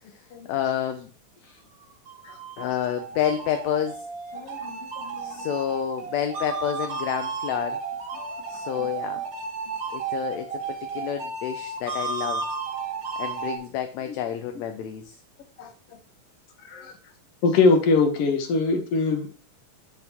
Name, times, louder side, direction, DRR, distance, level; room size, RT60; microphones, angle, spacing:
voice 1, 0.5-1.1 1.4-1.6 2.6-4.0 5.2-7.8 8.5-9.2 9.9-12.5 13.2-15.2 18.6-18.7, left 9 dB, 75° left, 7 dB, 1.8 m, -29 dB
sound 1, 1.8-13.6, right 4 dB, 55° right, 1.8 m, -33 dB
voice 2, 4.3-5.4 8.8-8.9 14.1-14.2 15.6-15.7 16.7-16.9 17.4-19.3, left 4 dB, 60° left, 4 dB, 2.0 m, -23 dB
11.0 x 4.2 x 2.9 m, 0.37 s
omnidirectional pair, 3.5 m